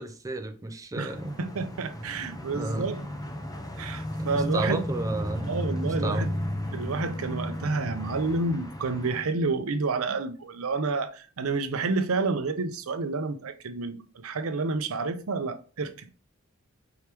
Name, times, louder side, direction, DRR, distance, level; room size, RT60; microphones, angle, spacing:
voice 1, 0.0-1.4 2.5-2.9 4.2-5.5 5.8-6.3, right 2 dB, 15° right, 0.4 m, -32 dB
voice 2, 1.0-3.0 3.8-4.8 5.5-6.3 6.7-16.1, right 3 dB, 80° right, 0.6 m, -29 dB
sound 1, 1.1-9.2, equal, 20° left, 0.8 m, -34 dB
4.7 x 3.0 x 3.3 m
head